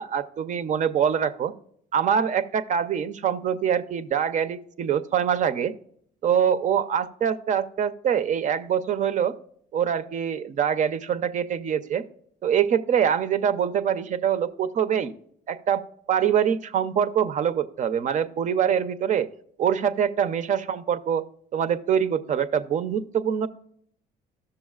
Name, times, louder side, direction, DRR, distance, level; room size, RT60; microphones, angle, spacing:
voice 1, 0.0-1.5 1.9-5.7 6.2-9.3 9.7-12.0 12.4-15.1 15.5-19.3 19.6-21.2 21.5-23.5, right 8 dB, 45° right, 12 dB, 0.6 m, -24 dB
12.5 x 6.8 x 2.3 m, 0.64 s
cardioid pair, 110°, 17 cm